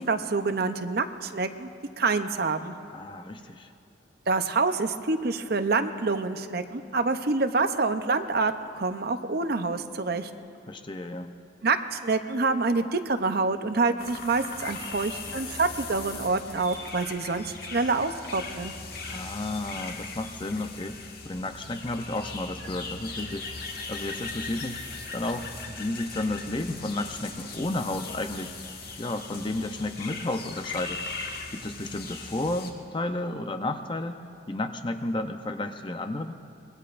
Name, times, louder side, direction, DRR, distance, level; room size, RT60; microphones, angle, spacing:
voice 1, 0.0-1.7 2.0-2.7 4.3-10.3 11.6-18.7, right 3 dB, 55° right, 8 dB, 0.7 m, -27 dB
voice 2, 2.9-3.7 10.7-11.3 19.1-24.8 25.1-28.5 29.0-31.0 31.5-36.3, left 2 dB, 25° left, 7 dB, 0.6 m, -32 dB
sound 1, 14.0-32.7, left 4 dB, 50° left, 1.6 m, -39 dB
25.5 x 21.0 x 2.5 m, 2.6 s
head